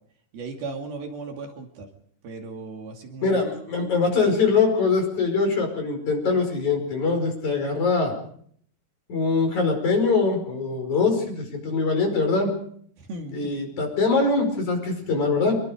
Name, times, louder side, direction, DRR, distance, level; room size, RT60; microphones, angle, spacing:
voice 1, 0.3-1.9 2.2-3.4 13.0-13.6, right 3 dB, 60° right, 3 dB, 4.3 m, -36 dB
voice 2, 3.2-8.2 9.1-12.6 13.3-15.6, left 4 dB, 45° left, 4 dB, 6.4 m, -23 dB
27.0 x 23.0 x 5.1 m, 0.62 s
omnidirectional pair, 4.9 m